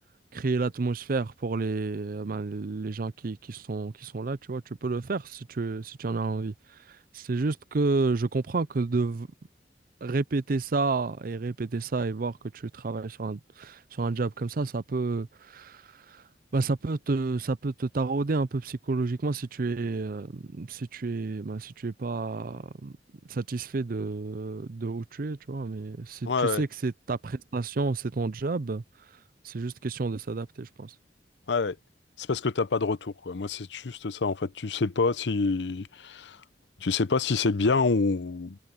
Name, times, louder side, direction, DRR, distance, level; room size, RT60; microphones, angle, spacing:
voice 1, 0.3-6.5 6.9-9.3 10.0-16.2 16.5-22.9 23.3-28.8 29.4-30.9, right 3 dB, 55° right, 0.5 m, -30 dB
voice 2, 26.3-26.6 31.5-31.8 32.2-36.4 36.8-38.6, left 4 dB, 85° left, 0.7 m, -27 dB
head